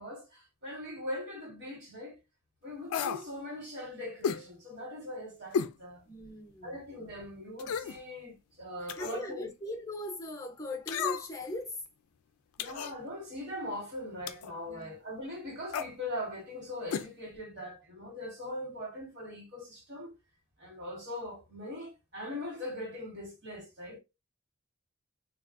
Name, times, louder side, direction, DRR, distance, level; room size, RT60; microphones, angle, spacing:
voice 1, 0.0-2.2 2.6-6.0 6.6-9.5 12.6-20.2 20.6-24.0, left 1 dB, 55° right, 1.4 m, -41 dB
sound 1, 2.9-3.3 4.2-4.4 5.5-5.8 6.2-6.3 7.6-8.0 8.9-9.2 10.9-11.4 12.6-13.0 14.3-14.5 15.7-15.9 16.9-17.1 17.3-17.4, left 7 dB, 90° left, 0.3 m, -33 dB
voice 2, 6.1-6.8 8.8-11.8 14.7-15.0, left 1 dB, 15° left, 0.7 m, -39 dB
3.3 x 2.3 x 2.5 m
head